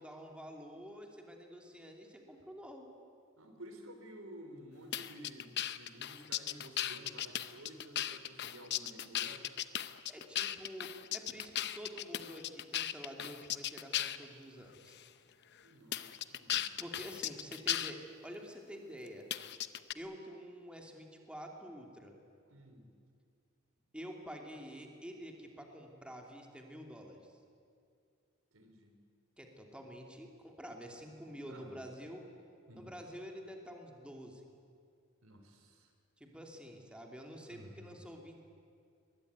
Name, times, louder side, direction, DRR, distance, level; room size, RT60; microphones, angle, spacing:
voice 1, 0.0-2.9 10.1-15.0 16.8-19.3 19.9-22.1 23.9-27.4 29.4-32.2 32.7-34.5 36.2-38.4, equal, 5° right, 2 dB, 2.6 m, -48 dB
voice 2, 3.4-9.5 15.6-16.8 22.5-22.9 28.5-29.0 31.3-31.8 32.7-33.0 35.2-35.9 37.5-38.0, equal, 85° right, 5 dB, 3.8 m, -53 dB
sound 1, 4.9-14.2 14.9-15.1 15.9-17.9 19.3-19.9, left 11 dB, 55° left, 0.8 m, -37 dB
23.0 x 21.0 x 9.4 m, 2.3 s
head